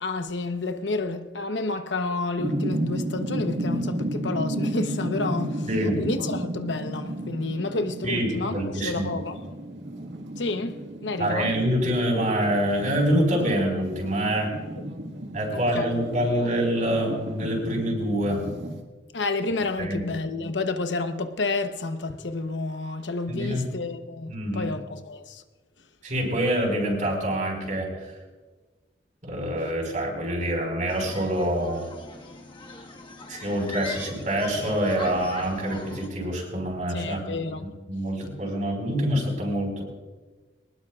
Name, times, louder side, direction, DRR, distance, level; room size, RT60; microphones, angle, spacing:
voice 1, 0.0-5.7 6.0-9.6 10.4-11.5 15.5-15.9 19.1-25.4 36.9-37.7, left 3 dB, 85° left, 0.9 m, -30 dB
sound 1, 2.4-18.8, right 1 dB, 85° right, 1.8 m, -33 dB
voice 2, 5.7-6.0 8.0-9.1 11.2-14.6 15.3-18.5 19.8-20.0 23.3-23.7 24.3-24.7 26.0-28.1 29.2-31.9 33.3-37.3 37.9-39.8, equal, 45° right, 4.9 m, -26 dB
sound 2, 30.9-36.1, left 3 dB, 25° left, 1.3 m, -40 dB
22.5 x 19.5 x 2.4 m
head